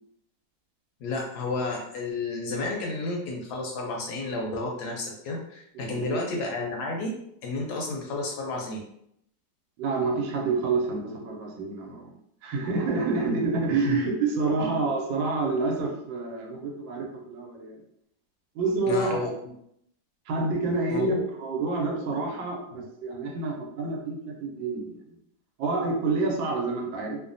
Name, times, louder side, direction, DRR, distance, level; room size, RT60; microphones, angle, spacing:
voice 1, 1.0-7.1 7.4-8.8 13.8-14.0 14.6-14.7 18.9-19.3 20.9-21.2 22.7-22.8, left 3 dB, 70° left, 0 dB, 1.0 m, -31 dB
voice 2, 9.8-12.2 12.4-17.8 18.5-19.2 20.3-25.2 25.6-27.2, right 3 dB, 90° right, 1 dB, 1.4 m, -28 dB
3.2 x 2.1 x 2.5 m, 0.73 s
omnidirectional pair, 2.0 m